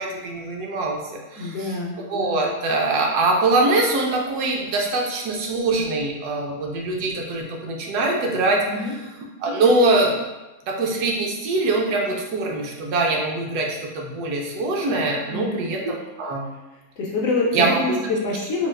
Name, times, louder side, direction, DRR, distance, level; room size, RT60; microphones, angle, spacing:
voice 1, 0.0-1.7 2.1-8.6 9.4-10.2 10.7-16.5 17.5-18.0, right 2 dB, 75° right, 0 dB, 1.1 m, -23 dB
voice 2, 1.4-2.0 8.7-9.0 15.3-15.6 17.0-18.7, left 3 dB, 70° left, -3 dB, 0.9 m, -25 dB
4.1 x 2.3 x 2.2 m, 1.1 s
omnidirectional pair, 1.7 m